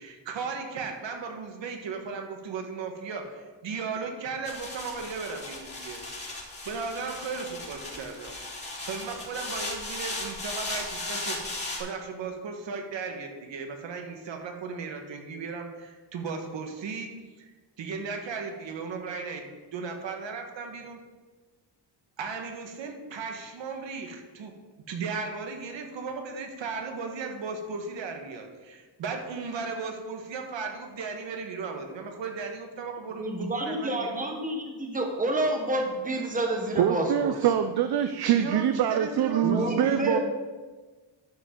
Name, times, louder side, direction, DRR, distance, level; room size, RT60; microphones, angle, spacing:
voice 1, 0.0-6.0 6.6-8.4 8.8-11.4 11.8-17.1 17.4-21.0 22.2-24.5 24.9-34.2 38.2-40.1, right 4 dB, 75° right, 4 dB, 1.5 m, -36 dB
sound 1, 4.4-11.8, left 2 dB, 20° left, 2.8 m, -36 dB
voice 2, 33.2-37.3 39.4-40.2, right 1 dB, 20° right, 2 dB, 1.3 m, -29 dB
voice 3, 36.7-40.2, right 10 dB, 60° right, 9 dB, 0.5 m, -24 dB
12.0 x 5.3 x 5.2 m, 1.3 s
wide cardioid pair, 150°, 45 cm